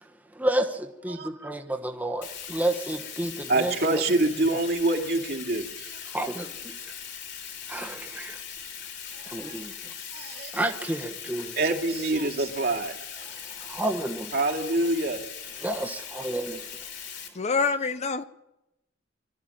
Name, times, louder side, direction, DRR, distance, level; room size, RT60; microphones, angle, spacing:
voice 1, 0.0-4.0 6.1-6.8 7.7-8.4 9.2-9.9 10.5-11.6 13.2-14.4 15.6-16.8, right 1 dB, 10° right, 1.2 m, -31 dB
Bathtub (filling or washing), 2.2-17.3, left 8 dB, 65° left, 3.5 m, -40 dB
voice 2, 3.5-6.0 9.1-9.6 10.1-10.5 11.6-13.0 14.3-15.2, right 2 dB, 55° right, 2.4 m, -26 dB
voice 3, 17.3-18.2, left 4 dB, 35° left, 0.6 m, -26 dB
24.0 x 12.5 x 9.0 m
head